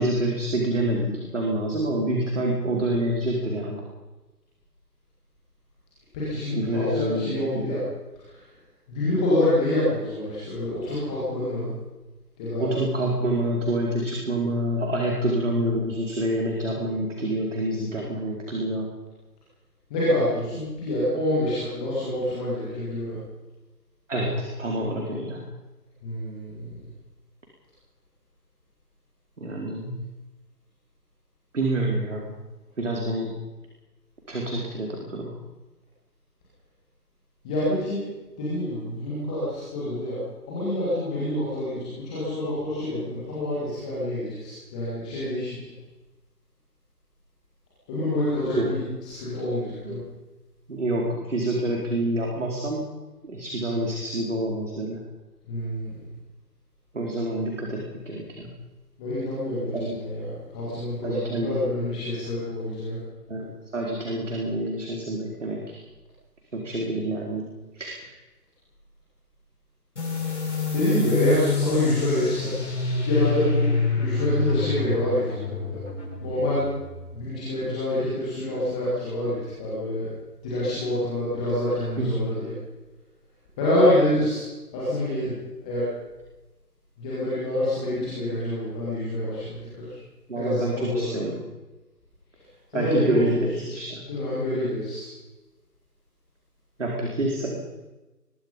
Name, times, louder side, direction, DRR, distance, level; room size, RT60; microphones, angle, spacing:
voice 1, 0.0-3.8 6.5-7.8 12.6-18.9 24.1-25.4 29.4-30.0 31.5-32.3 32.8-33.3 34.3-35.3 48.5-48.7 49.8-50.0 50.7-52.8 53.3-55.0 56.9-58.5 59.7-60.0 61.0-61.6 63.3-63.4 63.7-65.8 66.5-67.5 67.7-68.0 82.0-82.1 90.3-91.4 92.7-94.0 96.8-97.6, right 1 dB, 45° right, -1 dB, 4.5 m, -27 dB
voice 2, 6.1-7.8 8.2-8.4 8.9-11.7 12.4-12.8 19.9-23.2 26.0-26.8 37.4-38.0 38.4-40.2 40.5-45.6 47.9-50.0 55.5-55.9 59.0-63.0 70.7-72.5 73.0-73.7 73.9-75.8 76.2-76.7 77.1-80.1 80.4-82.5 83.6-84.4 84.7-85.3 85.6-85.9 87.0-89.9 90.4-91.1 92.7-93.6 94.1-95.1, left 1 dB, 5° left, -10 dB, 1.8 m, -27 dB
sound 1, 70.0-77.2, left 3 dB, 45° left, 7.6 m, -27 dB
23.5 x 22.5 x 5.4 m, 1.1 s
figure-of-eight pair, 160°, 50 cm